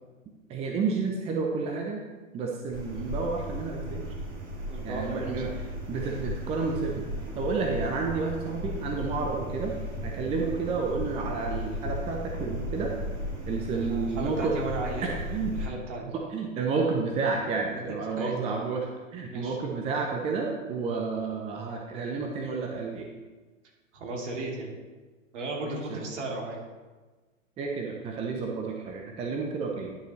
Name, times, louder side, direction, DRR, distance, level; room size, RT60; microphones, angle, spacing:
voice 1, 0.5-2.0 2.3-4.1 4.8-7.1 7.3-9.7 10.0-12.9 13.5-14.6 15.0-15.5 16.0-18.9 19.1-23.1 25.6-26.1 27.6-30.0, right 4 dB, 15° right, 1 dB, 0.7 m, -31 dB
sound 1, 2.7-15.7, equal, 35° right, 2.1 m, -36 dB
voice 2, 4.7-5.5 13.7-16.1 17.7-17.9 18.2-18.3 19.2-19.6 23.9-24.7 25.3-26.6, right 2 dB, 60° right, -2 dB, 2.6 m, -35 dB
11.0 x 6.7 x 3.2 m, 1.3 s
hypercardioid pair, 120°, 40 cm